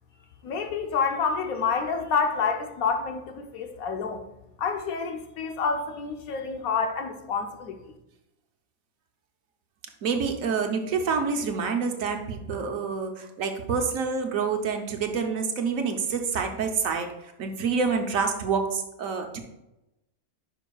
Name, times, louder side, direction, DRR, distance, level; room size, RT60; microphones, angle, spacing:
voice 1, 0.4-4.2 4.6-7.9, left 5 dB, 85° left, 5 dB, 1.2 m, -28 dB
voice 2, 10.0-19.4, right 5 dB, 75° right, 4 dB, 1.2 m, -27 dB
10.0 x 5.3 x 2.3 m, 0.91 s
omnidirectional pair, 1.5 m